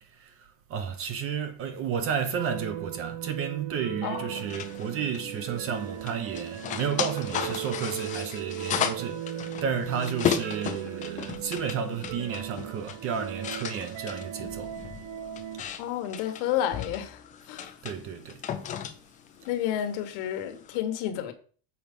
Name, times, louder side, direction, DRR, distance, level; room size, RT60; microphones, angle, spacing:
voice 1, 0.1-14.8 17.8-18.4, right 7 dB, 35° right, 0.7 m, -32 dB
sound 1, 2.4-15.6, right 11 dB, 85° right, 0.9 m, -37 dB
voice 2, 4.0-4.4 15.8-17.2 17.5-17.7 19.5-21.3, left 10 dB, 65° left, 1.4 m, -30 dB
sound 2, 4.4-20.8, left 9 dB, 20° left, 0.4 m, -36 dB
7.1 x 4.6 x 5.2 m
cardioid pair, 175°, 41 cm